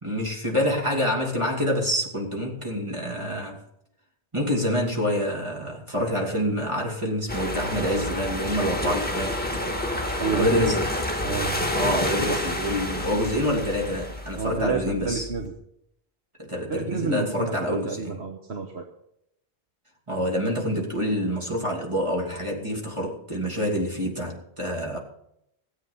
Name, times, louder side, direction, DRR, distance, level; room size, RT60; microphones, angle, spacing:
voice 1, 0.0-3.6 4.3-9.4 10.3-10.8 11.7-15.3 16.4-18.2 20.1-25.0, equal, 30° right, -1 dB, 2.8 m, -27 dB
sound 1, 7.3-15.5, left 1 dB, 10° left, 1.8 m, -29 dB
voice 2, 10.2-10.7 11.2-11.6 14.4-15.5 16.7-18.9, right 4 dB, 80° right, 4 dB, 1.6 m, -29 dB
17.5 x 8.4 x 5.5 m, 0.75 s
omnidirectional pair, 1.1 m